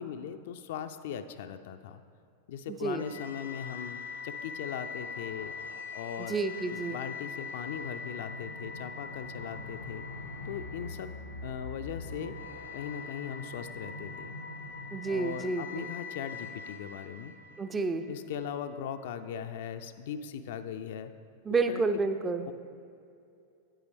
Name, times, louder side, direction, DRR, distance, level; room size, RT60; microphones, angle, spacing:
voice 1, 0.0-2.0 2.5-5.5 5.9-6.4 6.7-10.1 10.4-11.1 11.4-12.4 12.7-14.3 15.0-17.3 18.1-21.1 21.7-22.0 22.5-22.6, left 8 dB, 55° left, 9 dB, 0.4 m, -39 dB
voice 2, 2.7-3.0 6.3-7.0 14.9-15.9 17.6-18.0 21.4-22.5, right 3 dB, 15° right, 9 dB, 0.4 m, -30 dB
sound 1, 3.0-18.1, left 4 dB, 80° left, 1.0 m, -42 dB
9.3 x 9.0 x 3.5 m, 2.5 s
figure-of-eight pair, 90°, 0 cm